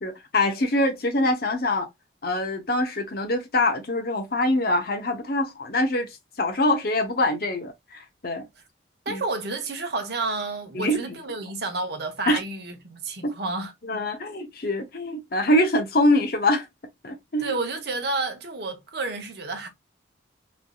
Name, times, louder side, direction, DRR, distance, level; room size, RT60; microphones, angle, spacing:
voice 1, 0.0-1.9 2.2-6.1 6.4-8.5 9.1-9.2 10.7-11.1 12.3-12.4 13.9-16.7 17.0-17.5, left 1 dB, 55° left, 0.7 m, -24 dB
voice 2, 9.1-13.7 17.4-19.7, right 3 dB, 55° right, 0.8 m, -30 dB
3.2 x 2.6 x 2.3 m
head